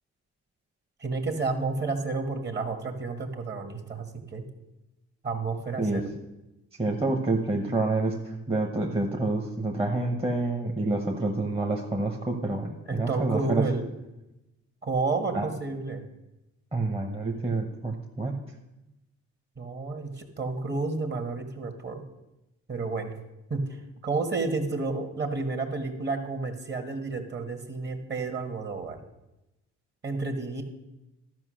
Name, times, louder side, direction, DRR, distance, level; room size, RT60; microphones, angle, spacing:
voice 1, 1.0-4.5 5.2-6.0 12.9-13.9 14.8-16.0 19.6-22.0 22.7-23.1 23.5-29.0 30.0-30.6, right 3 dB, 35° right, 6 dB, 1.5 m, -31 dB
voice 2, 6.8-13.6 15.3-15.5 16.7-18.3, right 2 dB, 20° right, 1 dB, 1.0 m, -28 dB
12.5 x 5.3 x 6.4 m, 0.96 s
cardioid pair, 90°, 30 cm